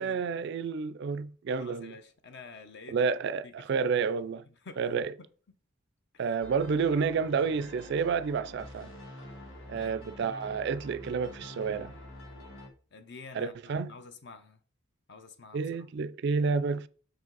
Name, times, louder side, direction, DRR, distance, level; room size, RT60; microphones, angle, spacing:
voice 1, 0.0-1.9 2.9-4.4 4.8-5.1 6.2-8.9 9.7-11.9 13.3-13.9 15.5-16.9, right 5 dB, 55° right, 0.3 m, -30 dB
voice 2, 1.5-3.1 3.4-3.9 4.5-5.3 6.1-6.4 9.7-10.1 12.9-14.6 15.1-15.6, left 3 dB, 55° left, 0.8 m, -49 dB
sound 1, 6.4-12.7, left 1 dB, 70° left, 1.9 m, -47 dB
6.2 x 5.1 x 3.9 m
head